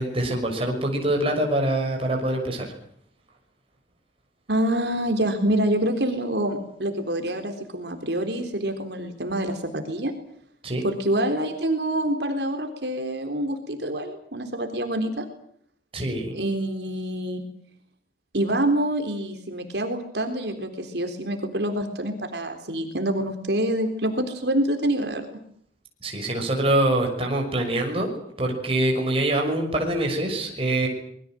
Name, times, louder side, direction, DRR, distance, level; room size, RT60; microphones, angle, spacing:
voice 1, 0.0-2.7 10.6-10.8 15.9-16.3 26.0-28.1 28.4-30.9, right 1 dB, 30° right, 1 dB, 6.3 m, -24 dB
voice 2, 4.5-10.1 10.8-15.3 16.3-17.4 18.3-25.3, right 1 dB, 65° right, 5 dB, 3.7 m, -26 dB
26.5 x 22.0 x 7.7 m, 0.66 s
head